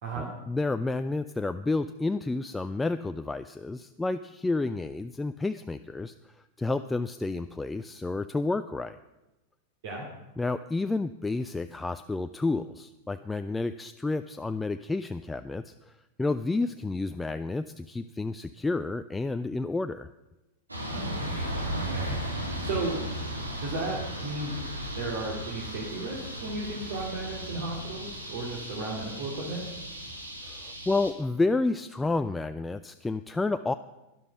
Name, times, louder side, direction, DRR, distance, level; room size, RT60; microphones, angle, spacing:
voice 1, 0.2-9.0 10.4-15.9 16.2-20.1 30.5-33.7, left 3 dB, 10° left, 9 dB, 0.4 m, -30 dB
sound 1, 20.7-31.1, right 1 dB, 80° right, 2.2 m, -36 dB
voice 2, 20.9-22.2 22.6-23.0 23.6-24.6 25.0-29.6, right 2 dB, 55° right, -2 dB, 2.5 m, -34 dB
12.0 x 11.0 x 5.7 m, 1.0 s
figure-of-eight pair, 90°, 0 cm